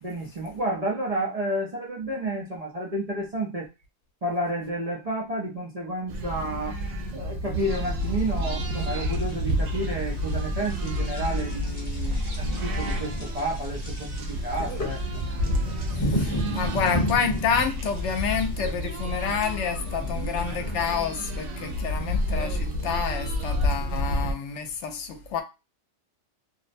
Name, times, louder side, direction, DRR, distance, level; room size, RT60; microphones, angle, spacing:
voice 1, 0.0-3.7 4.2-6.8 7.1-15.2, right 1 dB, 45° right, 0.5 m, -31 dB
sound 1, 6.1-24.3, equal, 80° right, 1.0 m, -30 dB
sound 2, 8.0-24.2, left 1 dB, 20° left, 0.9 m, -36 dB
sound 3, 14.6-21.2, left 3 dB, 50° left, 0.9 m, -45 dB
voice 2, 15.9-25.4, left 6 dB, 80° left, 0.9 m, -29 dB
2.5 x 2.0 x 2.5 m
omnidirectional pair, 1.2 m